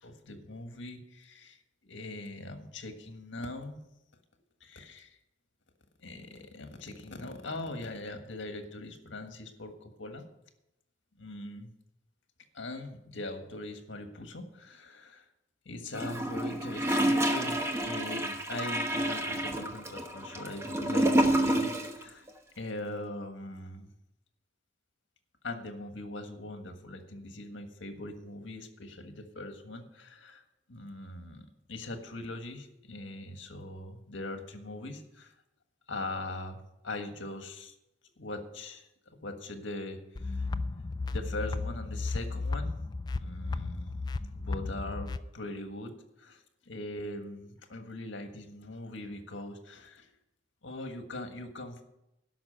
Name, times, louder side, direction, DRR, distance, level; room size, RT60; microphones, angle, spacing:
voice 1, 0.0-1.6 1.8-3.8 4.6-5.2 6.0-10.2 11.2-11.7 12.5-15.3 15.6-22.3 22.5-23.9 25.4-30.4 30.7-35.3 35.9-37.7 38.2-40.5 41.1-42.7 43.1-44.0 44.3-45.9 46.2-50.1 50.6-51.8, left 2 dB, 80° left, 6 dB, 1.6 m, -41 dB
Gurgling / Toilet flush, 15.9-22.0 22.3-22.4, right 1 dB, 15° right, 1.0 m, -29 dB
sound 1, 40.1-45.2, left 3 dB, 20° left, 0.3 m, -34 dB
12.0 x 6.1 x 9.0 m, 0.86 s
head